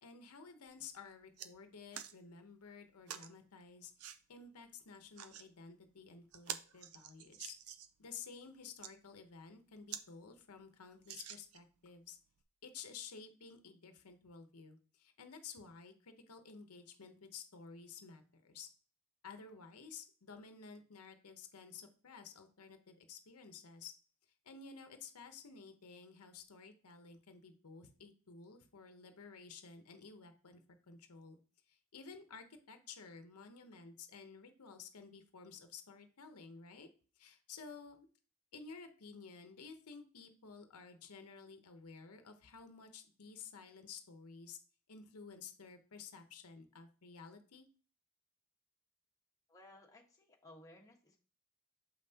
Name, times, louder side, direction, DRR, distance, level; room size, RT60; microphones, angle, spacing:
voice 1, 0.0-3.9 4.3-7.5 8.0-12.2 12.6-18.7 19.2-23.9 24.4-30.6 30.9-31.4 31.7-36.9 37.2-38.1 38.5-44.6 44.9-47.7, left 5 dB, 90° left, 7 dB, 0.8 m, -53 dB
sound 1, 0.7-0.8 1.1-1.5 1.9-2.1 3.1-3.3 4.0-4.2 4.9-5.5 5.9-6.0 6.3-8.0 8.6-8.9 9.5-9.6 9.9-10.1 10.4-10.5 11.0-11.8 12.4-12.5, right 9 dB, 70° right, 0.5 m, -47 dB
voice 2, 49.5-51.2, left 1 dB, 15° left, -1 dB, 1.3 m, -59 dB
7.1 x 5.5 x 2.8 m, 0.39 s
head